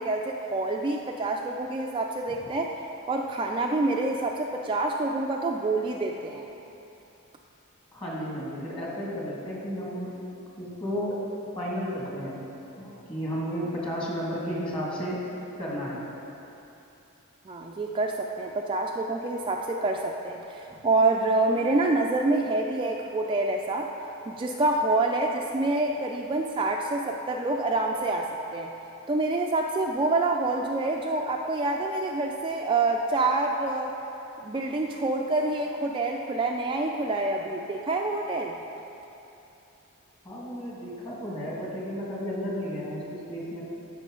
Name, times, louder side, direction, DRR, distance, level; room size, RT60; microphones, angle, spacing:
voice 1, 0.0-2.8 3.1-6.5 17.5-23.9 24.3-28.7 29.1-33.9 34.4-38.6, right 2 dB, 25° right, 1 dB, 0.3 m, -27 dB
voice 2, 7.9-10.1 10.6-12.4 12.7-15.2 15.6-16.0 20.7-20.8 40.2-43.6, equal, 25° left, -5 dB, 1.9 m, -33 dB
14.0 x 5.6 x 3.7 m, 2.9 s
head